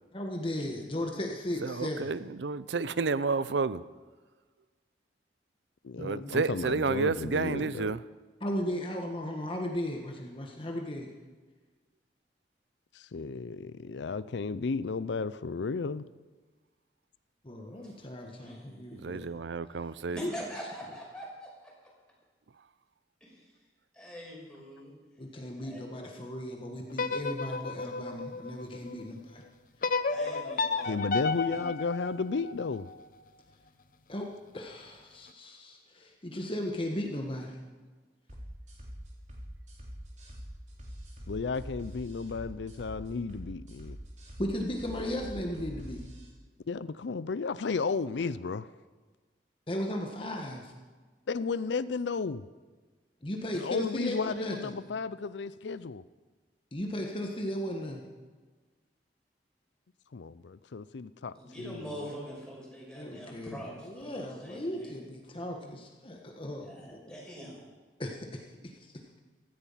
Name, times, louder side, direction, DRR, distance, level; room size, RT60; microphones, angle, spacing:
voice 1, 0.1-2.1 6.0-6.3 8.4-11.1 17.4-19.3 20.1-20.3 25.2-29.4 34.1-37.6 44.4-46.0 49.7-50.7 53.2-54.8 56.7-58.0 62.9-67.0 68.0-69.2, left 1 dB, 30° left, 2 dB, 1.4 m, -36 dB
voice 2, 1.6-3.8 6.0-8.0 19.0-20.2, right 4 dB, 85° right, 16 dB, 0.5 m, -30 dB
voice 3, 5.8-8.0 12.9-16.1 30.8-32.9 41.3-44.0 46.7-48.7 51.3-52.5 53.5-56.0 60.1-61.9, left 4 dB, 85° left, 16 dB, 0.5 m, -33 dB
voice 4, 18.3-19.3 20.2-21.7 23.2-23.5 23.9-24.9 25.6-25.8 30.1-31.6 61.3-65.0 66.6-67.7, equal, 5° left, -4 dB, 5.8 m, -44 dB
sound 1, 26.9-29.1 29.8-32.9, left 4 dB, 50° left, 0.8 m, -32 dB
sound 2, 38.3-46.3, equal, 45° right, 3.7 m, -44 dB
16.0 x 14.5 x 5.7 m, 1.4 s
head